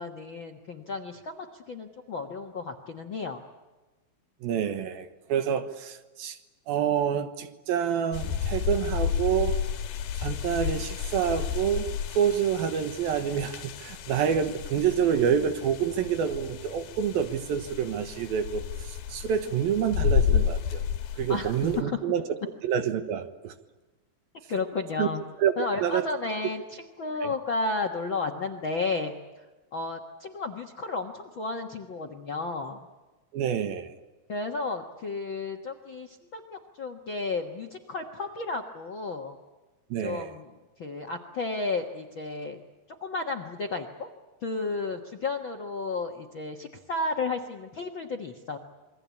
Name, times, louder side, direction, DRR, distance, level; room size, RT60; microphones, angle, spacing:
voice 1, 0.0-3.4 21.3-22.0 24.5-25.2 25.6-29.5 29.7-32.8 34.3-39.4 40.0-40.5 40.8-42.6 43.0-44.1 44.4-48.6, left 3 dB, 55° left, 7 dB, 1.4 m, -33 dB
voice 2, 4.4-6.4 6.7-9.6 10.2-20.8 21.2-22.2 22.6-23.5 25.0-25.1 25.4-25.5 25.8-26.1 27.2-27.3 33.3-33.9 39.9-40.3, right 8 dB, 75° right, 9 dB, 3.1 m, -27 dB
sound 1, 8.1-21.8, left 8 dB, 80° left, 3.4 m, -31 dB
28.0 x 23.0 x 8.5 m, 1.1 s
omnidirectional pair, 4.4 m